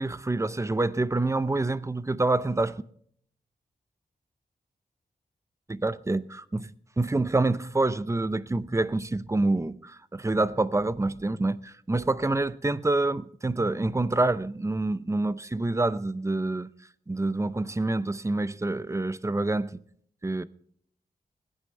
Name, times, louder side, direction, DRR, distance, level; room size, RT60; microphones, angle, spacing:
voice 1, 0.0-2.8 5.7-6.7 7.0-16.7 17.1-19.8 20.2-20.4, right 2 dB, 20° right, 0.6 m, -27 dB
21.0 x 9.9 x 3.3 m
wide cardioid pair, 80°, 16 cm